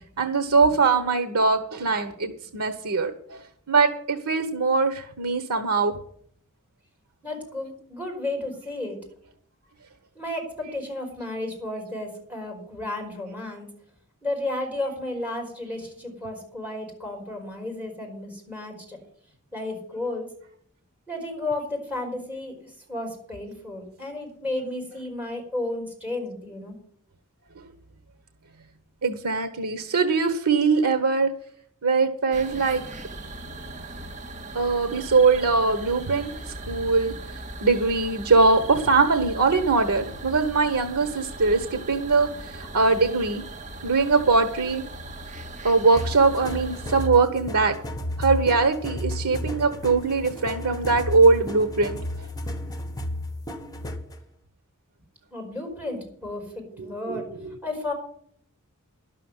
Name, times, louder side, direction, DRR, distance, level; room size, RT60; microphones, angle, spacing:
voice 1, 0.2-3.4 3.7-5.9 27.6-27.7 29.0-31.3 31.8-32.8 34.5-43.4 43.8-44.8 45.6-47.7 48.2-52.0 56.8-57.6, right 4 dB, 85° right, 9 dB, 1.1 m, -22 dB
voice 2, 7.2-9.0 10.1-13.7 14.2-19.0 19.5-20.3 21.1-22.5 22.9-26.7 55.3-57.3 57.6-57.9, left 2 dB, 5° right, 1 dB, 5.0 m, -33 dB
sound 1, 32.3-47.1, right 2 dB, 35° right, 1.6 m, -39 dB
sound 2, 46.0-54.2, left 1 dB, 15° left, 1.4 m, -33 dB
11.5 x 6.9 x 9.5 m, 0.63 s
head